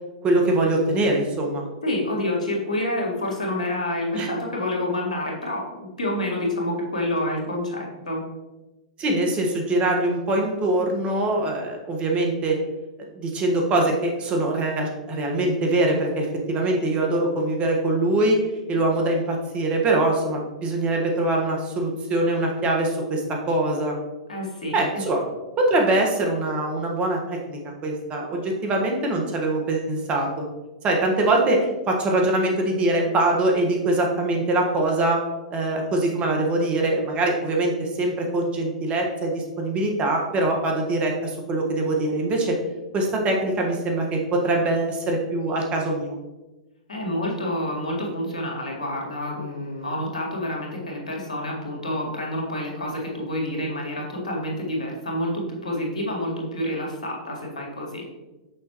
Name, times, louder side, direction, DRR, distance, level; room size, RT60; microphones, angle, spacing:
voice 1, 0.2-1.6 4.1-4.3 9.0-12.6 13.1-18.4 18.7-23.9 24.7-25.2 25.6-30.4 30.8-35.2 35.5-42.6 42.9-46.1, right 2 dB, 30° right, 1 dB, 1.4 m, -23 dB
voice 2, 1.8-8.2 24.3-24.8 46.9-58.0, left 1 dB, 80° left, -1 dB, 1.8 m, -28 dB
6.4 x 5.4 x 3.0 m, 1.1 s
hypercardioid pair, 105°, 4 cm